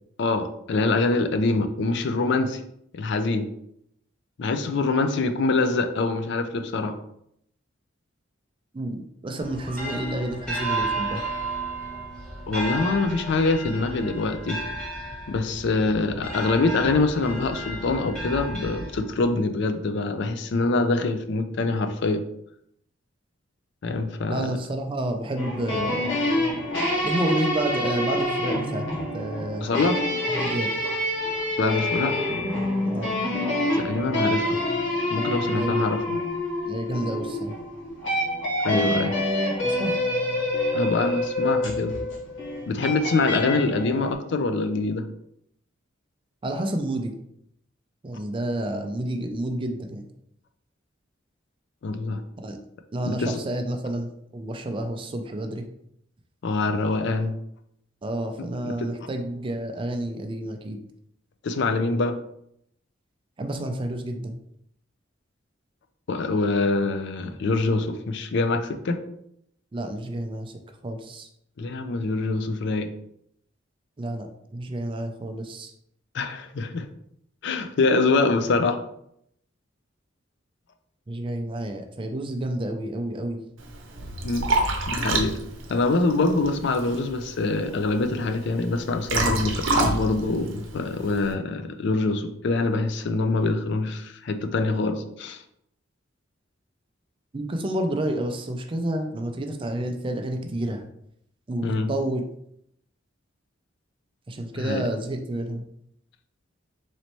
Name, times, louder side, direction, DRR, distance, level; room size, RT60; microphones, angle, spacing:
voice 1, 0.2-2.6 2.9-3.5 4.4-6.9 12.5-14.6 15.3-22.2 23.8-24.6 29.6-30.0 31.6-32.1 33.8-34.6 35.1-36.0 38.6-39.1 40.7-42.0 42.7-45.0 51.8-52.2 53.0-53.4 56.4-57.3 58.6-58.9 61.4-62.2 66.1-69.0 71.6-72.9 76.1-76.9 77.4-78.8 84.2-84.5 84.9-85.4 85.7-95.4 101.6-101.9 104.6-104.8, left 3 dB, 65° left, 8 dB, 0.4 m, -24 dB
voice 2, 8.7-11.2 24.3-26.1 27.0-28.9 29.1-29.7 30.3-30.7 32.8-33.1 35.4-35.8 36.7-37.5 39.6-40.0 46.4-47.1 48.0-50.0 52.4-52.6 52.9-55.6 58.0-60.8 63.4-64.4 69.7-70.5 70.8-71.3 74.0-75.7 81.1-83.4 97.3-100.8 101.5-102.2 104.3-105.6, right 1 dB, 25° right, 5 dB, 0.4 m, -29 dB
sound 1, 9.4-19.3, right 2 dB, 5° left, 1.1 m, -33 dB
sound 2, 25.4-44.1, left 1 dB, 80° left, 1.2 m, -27 dB
Liquid, 83.6-91.3, right 2 dB, 85° right, 0.7 m, -29 dB
4.1 x 3.1 x 3.0 m, 0.74 s
head